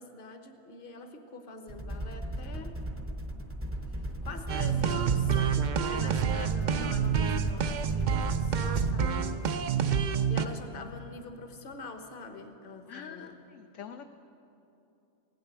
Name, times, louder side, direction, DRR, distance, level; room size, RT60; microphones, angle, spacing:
voice 1, 0.0-2.8 4.2-13.4, left 3 dB, 40° left, 6 dB, 1.2 m, -45 dB
sound 1, 1.7-9.0, right 1 dB, 15° right, 0.6 m, -37 dB
sound 2, 4.5-10.5, right 7 dB, 65° right, 0.4 m, -28 dB
voice 2, 12.9-14.0, left 7 dB, 65° left, 6 dB, 0.9 m, -45 dB
17.0 x 9.3 x 8.1 m, 2.8 s
omnidirectional pair, 1.5 m